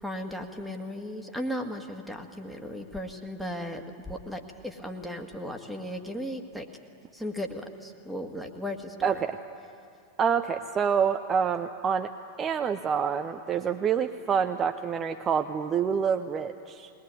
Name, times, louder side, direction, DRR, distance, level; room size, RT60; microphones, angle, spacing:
voice 1, 0.0-6.7 7.1-9.1, equal, ahead, 4 dB, 1.9 m, -36 dB
voice 2, 9.0-9.4 10.2-12.1 12.4-16.9, right 7 dB, 25° right, 7 dB, 0.8 m, -27 dB
21.0 x 20.5 x 9.7 m, 2.4 s
figure-of-eight pair, 90°, 0 cm